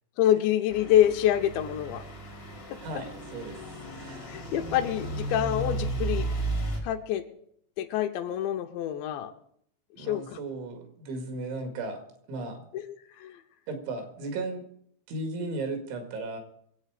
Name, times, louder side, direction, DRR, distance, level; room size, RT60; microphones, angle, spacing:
voice 1, 0.2-2.0 2.7-2.8 4.3-6.3 6.8-7.2 7.8-9.3 10.0-10.4 12.9-13.4, left 11 dB, 80° left, 7 dB, 3.0 m, -26 dB
Truck / Idling, 0.7-6.8, right 2 dB, 55° left, 0.9 m, -34 dB
voice 2, 2.8-3.6 3.9-4.4 10.0-12.0 12.3-12.7 13.7-14.7 15.1-16.4, right 3 dB, 80° right, 5 dB, 4.4 m, -35 dB
23.0 x 8.3 x 5.0 m, 0.68 s
omnidirectional pair, 5.3 m